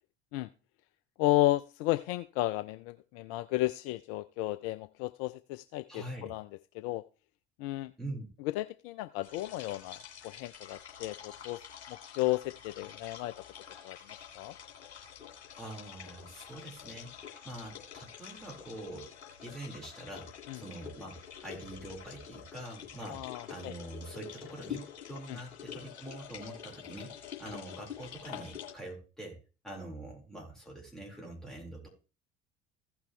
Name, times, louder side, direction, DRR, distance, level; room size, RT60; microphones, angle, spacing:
voice 1, 1.2-6.5 6.7-7.0 7.6-7.9 8.4-11.6 11.9-13.4 13.8-14.0 14.3-14.5 20.5-20.6 23.1-23.7 25.3-25.4, left 16 dB, 50° left, 14 dB, 0.5 m, -33 dB
voice 2, 5.9-6.3 8.0-8.3 15.5-19.1 19.4-29.4 29.6-31.9, right 1 dB, ahead, -2 dB, 4.4 m, -44 dB
sound 1, 9.2-28.7, left 9 dB, 70° left, 2.2 m, -47 dB
15.5 x 5.9 x 3.2 m, 0.34 s
figure-of-eight pair, 60°, 32 cm